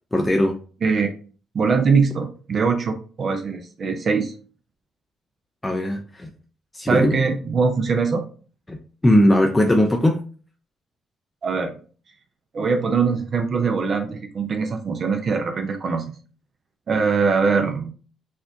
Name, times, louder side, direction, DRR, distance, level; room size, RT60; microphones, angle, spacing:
voice 1, 0.1-0.6 5.6-6.3 6.7-7.2 8.7-8.8 9.0-10.2, left 1 dB, 15° left, 3 dB, 0.4 m, -18 dB
voice 2, 1.5-2.9 3.2-4.3 6.9-8.3 11.4-11.7 12.5-16.1 16.9-17.9, right 5 dB, 50° right, 6 dB, 0.5 m, -22 dB
4.3 x 2.3 x 2.6 m, 0.39 s
cardioid pair, 90°, 0 cm